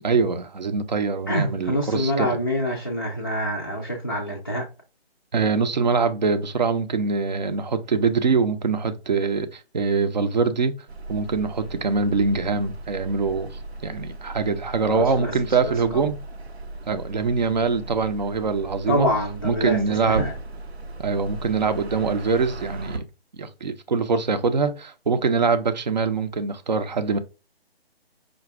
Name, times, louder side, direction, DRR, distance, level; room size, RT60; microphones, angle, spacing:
voice 1, 0.0-2.3 5.3-10.7 11.1-13.5 13.8-16.2 16.9-19.1 19.4-20.3 21.0-23.0 23.3-27.2, right 4 dB, 45° right, 0.5 m, -23 dB
voice 2, 1.3-4.7 14.9-15.3 15.6-16.1 18.9-20.3, equal, 20° left, 0.4 m, -26 dB
sound 1, 10.9-23.0, right 2 dB, 80° right, 0.7 m, -37 dB
5.0 x 2.3 x 3.3 m
figure-of-eight pair, 145°, 31 cm